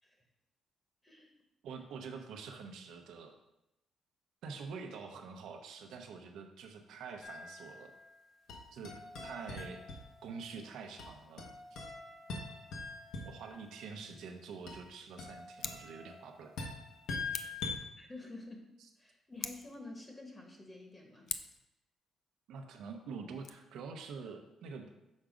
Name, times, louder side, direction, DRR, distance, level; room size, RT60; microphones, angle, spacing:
voice 1, 1.6-3.3 4.4-7.9 8.7-11.5 13.2-16.5 18.8-18.9 22.5-25.0, right 5 dB, 80° right, 4 dB, 0.8 m, -46 dB
sound 1, 7.2-8.0 8.5-10.5 11.0-13.6 14.7-17.8, left 3 dB, 80° left, 1.2 m, -44 dB
Scissors, 15.5-15.9 17.3-17.7 19.3-19.8 21.3-21.7 23.3-23.5, left 7 dB, 60° left, 0.4 m, -42 dB
voice 2, 18.0-18.7 19.0-21.3, left 2 dB, 25° left, 2 dB, 1.2 m, -49 dB
6.3 x 3.7 x 5.0 m, 0.89 s
cardioid pair, 90°, 0 cm